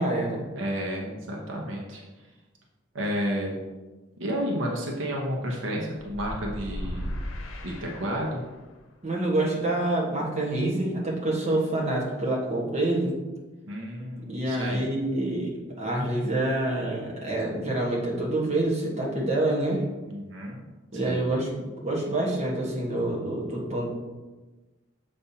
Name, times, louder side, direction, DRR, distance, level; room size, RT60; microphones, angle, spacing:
voice 1, 0.0-0.4 9.0-13.1 14.3-15.5 15.8-19.8 20.9-21.5 21.8-23.9, right 1 dB, 35° right, -4 dB, 1.2 m, -27 dB
voice 2, 0.6-2.0 2.9-3.6 4.2-7.1 7.6-8.4 13.7-14.9 20.1-20.6 21.1-21.3, equal, 70° right, -1 dB, 0.9 m, -31 dB
sound 1, 6.0-8.6, left 1 dB, 85° left, 0.8 m, -36 dB
6.9 x 5.2 x 2.8 m, 1.2 s
head